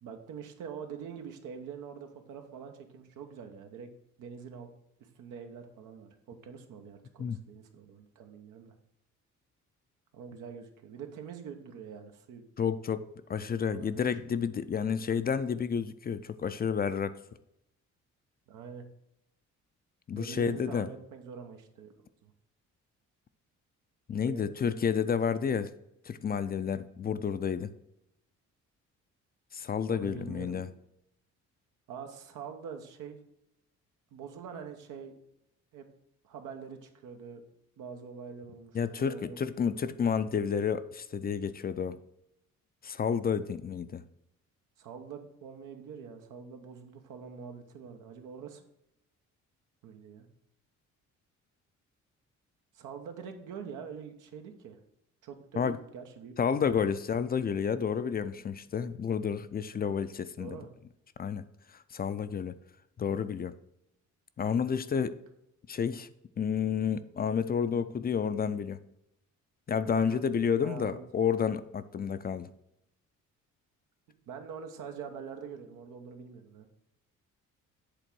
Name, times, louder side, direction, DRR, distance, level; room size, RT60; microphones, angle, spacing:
voice 1, 0.0-3.9 4.2-4.7 5.0-8.7 10.1-12.4 13.5-14.3 18.5-18.9 20.1-21.9 22.2-22.3 24.1-24.5 29.9-30.6 31.9-33.2 34.1-35.1 35.7-35.9 36.2-37.4 37.8-39.4 44.8-48.6 49.8-50.3 52.7-54.8 55.2-56.4 60.4-60.7 69.9-70.2 70.6-71.0 74.3-76.7, right 6 dB, 90° right, 1.1 m, -45 dB
voice 2, 12.6-17.2 20.1-20.9 24.1-25.7 26.1-27.7 29.5-30.7 38.7-42.0 42.8-44.0 55.6-55.8 56.4-60.6 61.2-61.4 61.9-62.6 63.0-63.6 64.4-65.2 65.7-66.1 66.4-68.8 69.7-72.5, left 7 dB, 30° left, 0.4 m, -30 dB
8.1 x 3.5 x 6.1 m
cardioid pair, 90°, 30 cm